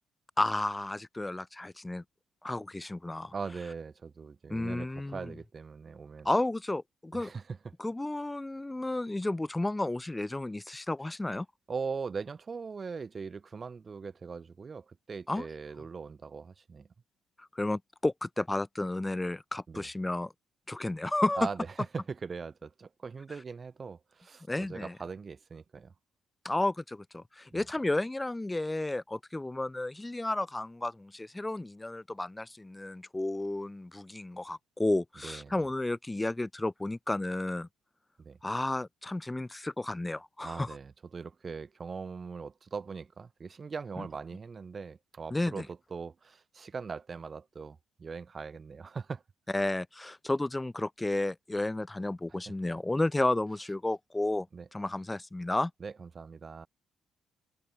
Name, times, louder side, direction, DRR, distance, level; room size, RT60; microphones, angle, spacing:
voice 1, 0.4-2.0 2.4-3.3 4.5-5.3 6.2-7.3 7.8-11.5 15.3-15.5 17.4-20.3 20.7-21.5 24.5-24.9 26.4-37.7 38.4-40.7 44.0-44.1 45.3-45.7 49.5-54.5 54.7-55.7, left 2 dB, 15° left, 2.1 m, -32 dB
voice 2, 3.3-6.3 7.1-7.7 11.7-16.9 19.7-19.9 21.4-21.7 21.9-25.9 27.5-27.6 35.2-35.5 38.2-38.4 40.4-49.2 52.5-52.6 54.5-54.7 55.8-56.7, right 5 dB, 35° right, 2.1 m, -40 dB
open air
cardioid pair, 90°, 0 cm